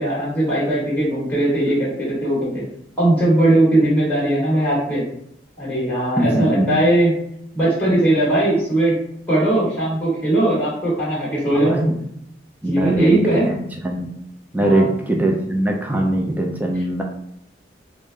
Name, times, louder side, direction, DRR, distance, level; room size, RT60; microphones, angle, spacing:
voice 1, 0.0-2.6 3.0-5.0 5.6-7.1 7.5-8.9 9.3-11.8 12.7-13.5 14.6-14.9, right 1 dB, 10° left, -7 dB, 1.4 m, -19 dB
voice 2, 6.2-6.8 11.5-12.0 12.6-13.2 13.5-13.6 13.8-14.1 14.5-17.0, right 1 dB, 10° right, 1 dB, 0.5 m, -21 dB
5.2 x 2.1 x 3.3 m, 0.73 s
head